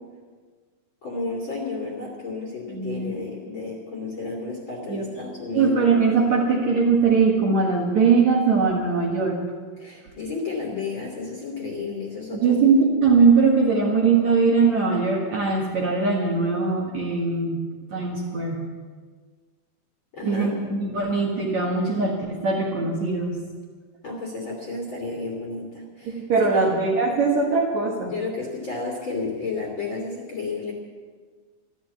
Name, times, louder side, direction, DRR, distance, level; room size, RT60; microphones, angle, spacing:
voice 1, 1.0-5.8 9.8-12.8 20.1-20.5 24.0-26.7 28.1-30.7, left 3 dB, 35° left, -2 dB, 2.4 m, -32 dB
voice 2, 2.7-3.2 4.9-5.0 5.5-9.4 12.3-17.6 17.9-18.6 20.2-23.4 26.1-28.1, right 4 dB, 55° right, -2 dB, 2.2 m, -21 dB
13.0 x 12.5 x 8.2 m, 1.5 s
omnidirectional pair, 4.9 m